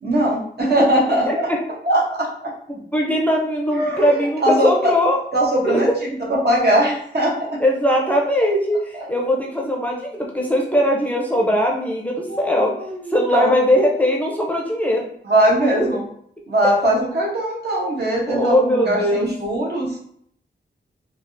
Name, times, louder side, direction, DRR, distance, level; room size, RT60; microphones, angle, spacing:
voice 1, 0.0-1.5 1.8-2.5 3.7-4.9 5.3-7.3 12.3-13.5 15.2-16.0 16.5-20.0, right 1 dB, 60° right, -3 dB, 0.9 m, -20 dB
voice 2, 1.3-1.6 2.7-5.2 5.7-6.0 7.6-12.7 13.1-15.0 18.3-19.3, equal, 10° left, -2 dB, 0.5 m, -20 dB
3.4 x 2.4 x 2.6 m, 0.65 s
wide cardioid pair, 115°, 19 cm